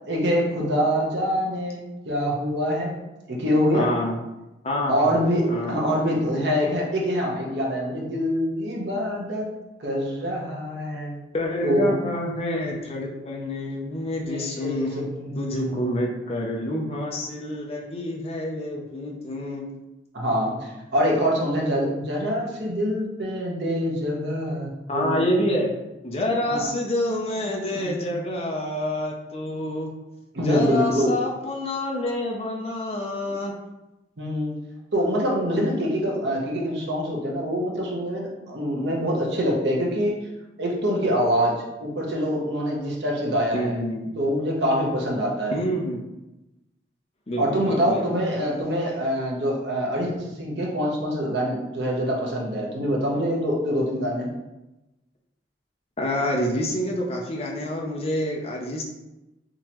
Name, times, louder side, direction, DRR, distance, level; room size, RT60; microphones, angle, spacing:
voice 1, 0.1-3.0 3.3-3.9 4.9-9.5 9.8-11.2 11.6-12.0 14.3-14.9 15.1-15.7 20.1-25.3 26.5-26.7 27.7-28.2 30.3-31.2 33.2-33.4 34.2-34.5 34.9-40.2 40.6-43.8 44.2-45.6 47.4-50.1 50.4-54.3, equal, 75° right, -2 dB, 0.9 m, -25 dB
voice 2, 3.7-4.2 4.6-5.2 5.5-5.8 11.3-15.0 15.4-19.7 24.9-25.7 26.0-29.9 30.4-33.5 43.5-44.0 45.5-46.0 47.3-48.1 56.0-58.8, left 1 dB, 35° left, -1 dB, 0.5 m, -27 dB
3.7 x 2.9 x 2.9 m, 0.98 s
head